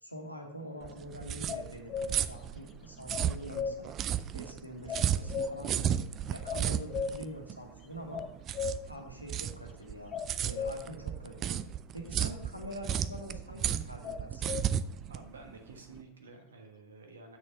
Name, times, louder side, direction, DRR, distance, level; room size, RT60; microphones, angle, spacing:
voice 1, 0.0-8.3 8.9-11.6 11.9-14.6, equal, 90° left, 1 dB, 1.5 m, -45 dB
sound 1, 0.8-16.0, right 10 dB, 30° right, 0.4 m, -34 dB
sound 2, 1.5-2.2 3.1-3.7 4.9-5.6 6.5-7.2 8.1-8.8 10.1-10.7 14.0-14.7, left 6 dB, 30° left, 0.5 m, -35 dB
voice 2, 15.0-17.4, right 3 dB, 70° right, 4 dB, 1.3 m, -51 dB
7.3 x 6.5 x 5.5 m, 0.84 s
figure-of-eight pair, 90°, 0 cm